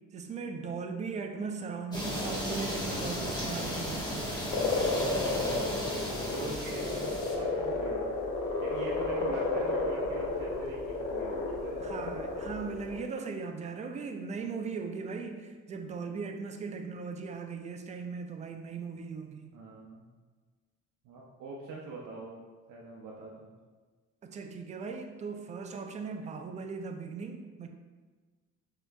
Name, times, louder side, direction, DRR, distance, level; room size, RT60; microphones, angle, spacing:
voice 1, 0.1-4.3 9.2-9.3 11.8-19.5 24.2-27.7, right 5 dB, 25° right, 5 dB, 0.4 m, -38 dB
sound 1, 1.9-7.3, equal, 15° left, 1.3 m, -35 dB
sound 2, 4.5-13.0, left 2 dB, 90° left, 0.7 m, -32 dB
voice 2, 6.1-8.0 8.6-11.8 19.5-20.1 21.0-22.4 22.7-23.5, right 3 dB, 80° right, -3 dB, 0.6 m, -44 dB
5.5 x 2.9 x 2.3 m, 1.4 s
cardioid pair, 90°, 30 cm